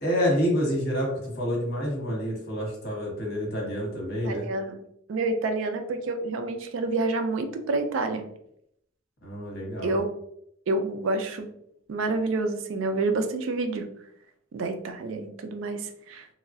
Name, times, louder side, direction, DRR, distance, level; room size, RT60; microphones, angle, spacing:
voice 1, 0.0-4.5 9.2-10.0, equal, 50° left, -1 dB, 1.0 m, -28 dB
voice 2, 4.2-4.8 5.1-8.2 9.8-10.1 10.7-11.5 11.9-13.9 14.5-16.3, right 3 dB, 70° right, 7 dB, 0.4 m, -28 dB
2.9 x 2.3 x 2.6 m, 0.72 s
head